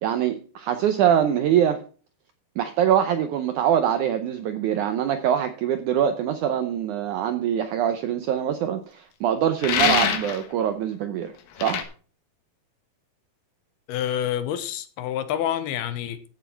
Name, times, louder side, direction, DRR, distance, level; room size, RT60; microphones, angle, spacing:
voice 1, 0.0-1.8 2.6-11.3 11.6-11.8, right 9 dB, 80° right, 1.7 m, -23 dB
sound 1, 9.6-10.4 11.6-11.8, left 8 dB, 70° left, 3.0 m, -24 dB
Sigh, 9.6-10.2, left 7 dB, 50° left, 6.3 m, -32 dB
voice 2, 13.9-16.3, left 10 dB, 85° left, 2.9 m, -28 dB
14.5 x 7.1 x 4.6 m
omnidirectional pair, 4.5 m